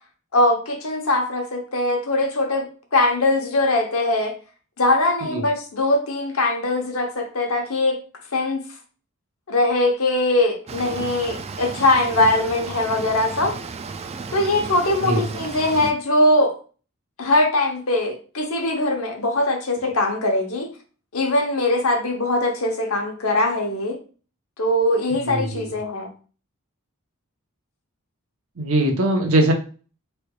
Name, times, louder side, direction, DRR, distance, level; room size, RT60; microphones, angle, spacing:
voice 1, 0.3-4.3 4.8-8.0 8.3-8.6 9.5-13.6 14.3-16.5 17.2-20.7 21.1-24.0 24.6-26.1, left 2 dB, 75° left, 3 dB, 0.9 m, -21 dB
sound 1, 10.7-15.9, right 4 dB, 30° right, 0.3 m, -34 dB
voice 2, 25.1-25.7 28.6-29.5, right 1 dB, 75° right, 3 dB, 0.9 m, -21 dB
4.5 x 3.3 x 2.3 m, 0.38 s
head